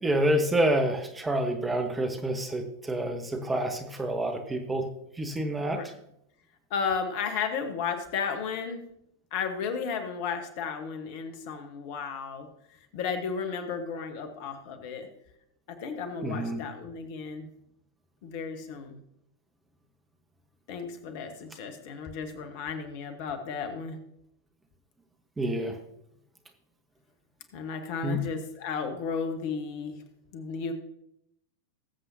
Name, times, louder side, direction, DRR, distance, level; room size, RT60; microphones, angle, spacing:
voice 1, 0.0-4.9 5.2-5.8 16.2-16.6 25.4-25.8 28.0-28.2, right 1 dB, 10° right, 5 dB, 1.2 m, -28 dB
voice 2, 6.7-8.8 9.3-12.5 12.9-15.1 15.7-17.5 18.2-19.0 20.7-24.0 27.5-30.0 30.3-30.7, left 6 dB, 45° left, 7 dB, 1.2 m, -34 dB
20.0 x 7.5 x 2.8 m, 0.78 s
figure-of-eight pair, 90°, 0 cm